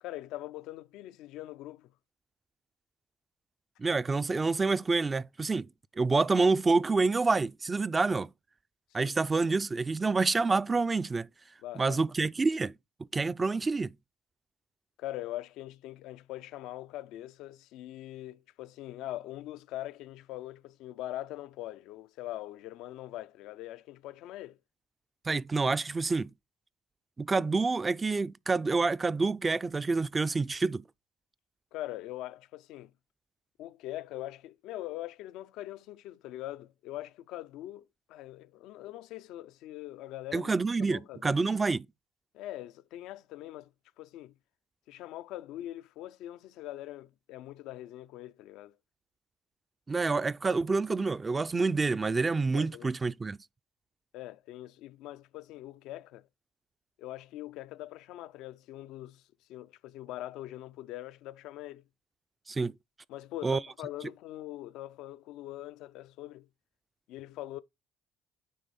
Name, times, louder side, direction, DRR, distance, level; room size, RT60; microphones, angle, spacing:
voice 1, 0.0-1.9 9.0-9.1 11.6-12.0 15.0-24.6 31.7-32.9 33.6-40.5 40.8-41.4 42.3-43.7 44.0-44.3 44.9-48.8 52.5-52.9 54.1-56.3 57.0-61.8 63.1-66.5 67.1-67.6, left 14 dB, 80° left, 0.4 m, -42 dB
voice 2, 3.8-5.7 6.0-8.3 8.9-11.3 11.8-12.7 13.1-13.9 25.3-26.3 27.2-30.8 40.3-41.9 49.9-53.4 62.5-62.7 63.4-63.6, right 3 dB, 25° right, 0.3 m, -27 dB
9.4 x 3.1 x 4.1 m
supercardioid pair, 80°, 0 cm